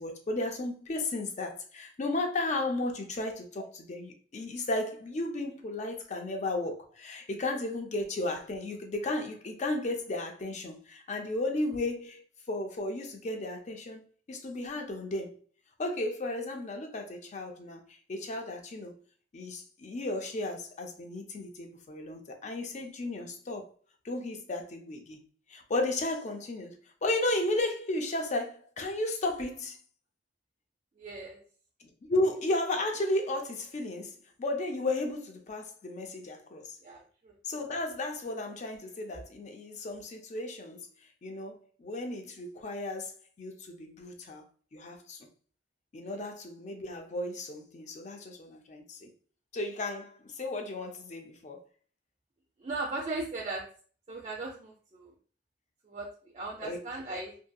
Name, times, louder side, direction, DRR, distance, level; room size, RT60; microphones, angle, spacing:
voice 1, 0.0-14.0 14.3-15.4 15.8-18.9 19.3-23.7 24.0-25.2 25.5-29.8 31.8-36.8 37.4-40.8 41.2-44.4 44.7-45.2 45.9-49.1 49.5-51.6 56.6-56.8, left 2 dB, 40° left, 0.4 m, -34 dB
voice 2, 31.0-31.4 36.8-37.3 39.1-39.2 46.0-46.2 52.6-53.6 54.1-55.1 55.8-56.1 56.3-57.4, right 3 dB, 35° right, 0.4 m, -37 dB
2.7 x 2.6 x 2.2 m
head